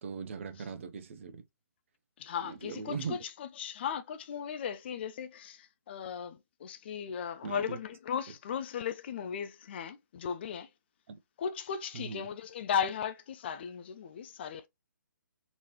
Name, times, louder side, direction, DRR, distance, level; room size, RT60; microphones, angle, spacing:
voice 1, 0.0-1.4 2.4-3.2 7.4-7.8 11.1-11.2 11.9-12.3, right 5 dB, 40° right, 0.7 m, -40 dB
voice 2, 2.2-10.7 11.4-14.7, left 7 dB, 35° left, 0.4 m, -36 dB
4.0 x 3.1 x 2.9 m
figure-of-eight pair, 135°, 10 cm